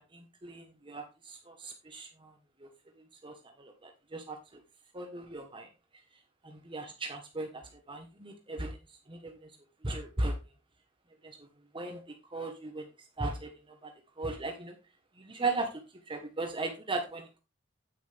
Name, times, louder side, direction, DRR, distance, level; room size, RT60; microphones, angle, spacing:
voice 1, 0.0-2.3 2.6-2.7 3.2-4.4 4.9-5.7 6.4-8.8 9.1-9.3 9.8-10.4 11.2-11.4 11.7-12.0 12.3-12.8 13.2-13.5 13.8-13.9 14.2-14.7 15.2-17.4, right 2 dB, 25° right, 4 dB, 1.2 m, -37 dB
9.2 x 9.1 x 3.4 m, 0.27 s
head